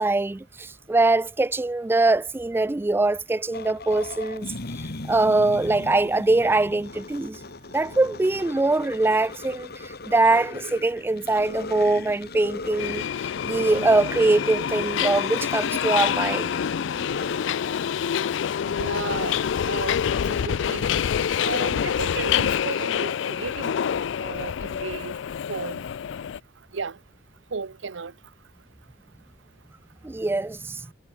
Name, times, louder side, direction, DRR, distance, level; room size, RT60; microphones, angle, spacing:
voice 1, 0.0-4.5 5.1-7.4 7.7-13.0 13.4-16.5 30.0-30.8, right 2 dB, 10° right, 0.3 m, -22 dB
sound 1, 3.5-17.5, left 2 dB, 60° left, 1.6 m, -37 dB
Subway metro underground, 12.8-26.4, left 8 dB, 80° left, 0.4 m, -26 dB
voice 2, 18.7-19.4 19.7-21.0 21.4-25.1 25.5-25.9 26.7-27.0 27.5-28.1, right 5 dB, 90° right, 0.8 m, -34 dB
head